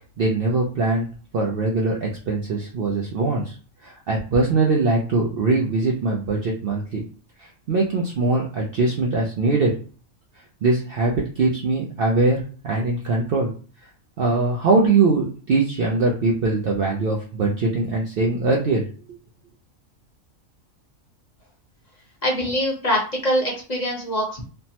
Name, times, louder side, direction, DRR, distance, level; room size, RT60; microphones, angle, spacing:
voice 1, 0.2-3.6 3.8-7.0 7.4-9.8 10.6-13.5 14.2-18.9, right 3 dB, 65° right, -1 dB, 0.6 m, -22 dB
voice 2, 22.2-24.5, equal, 35° left, -3 dB, 0.8 m, -23 dB
3.2 x 2.0 x 2.8 m, 0.39 s
omnidirectional pair, 1.4 m